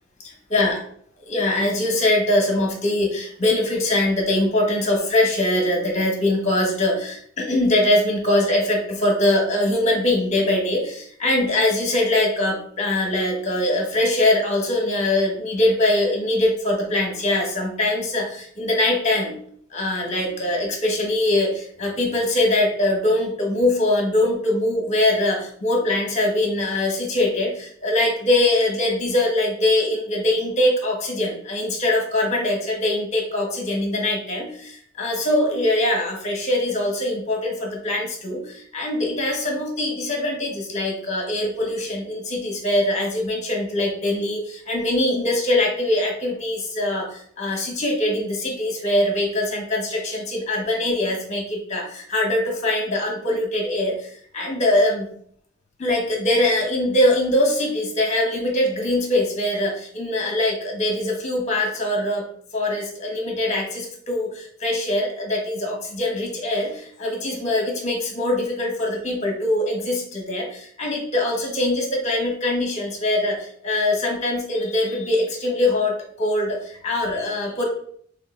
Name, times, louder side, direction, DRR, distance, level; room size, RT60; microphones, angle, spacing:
voice 1, 0.2-0.8 1.3-19.4 19.7-54.1 54.3-55.1 55.8-62.2 62.5-77.6, left 1 dB, 35° left, 0 dB, 1.2 m, -22 dB
3.7 x 3.6 x 3.7 m, 0.62 s
head